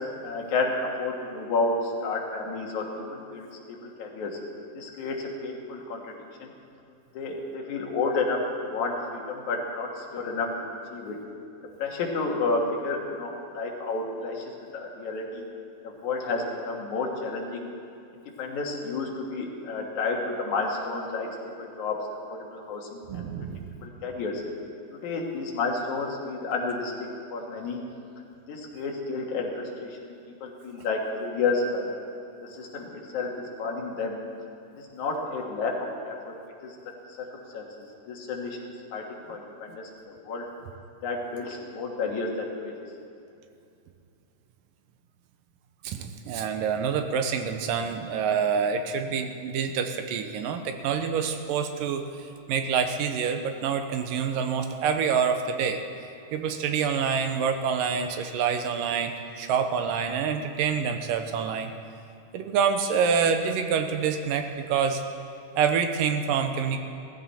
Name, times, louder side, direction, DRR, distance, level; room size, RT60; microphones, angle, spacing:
voice 1, 0.2-4.4 4.7-6.1 6.4-6.5 7.1-11.2 11.8-15.5 15.8-17.7 18.1-21.3 21.6-23.2 23.8-24.4 25.0-26.9 27.3-27.8 28.5-30.1 30.4-31.9 32.4-34.2 34.8-36.3 36.6-36.7 37.2-37.3 37.5-37.6 38.1-40.5 41.0-42.8, left 3 dB, 65° left, -1 dB, 2.9 m, -31 dB
voice 2, 23.1-23.7 45.8-52.0 52.5-55.8 56.3-61.7 62.3-65.0 65.6-66.8, right 6 dB, 80° right, 7 dB, 2.5 m, -27 dB
17.0 x 15.0 x 4.3 m, 2.7 s
omnidirectional pair, 3.9 m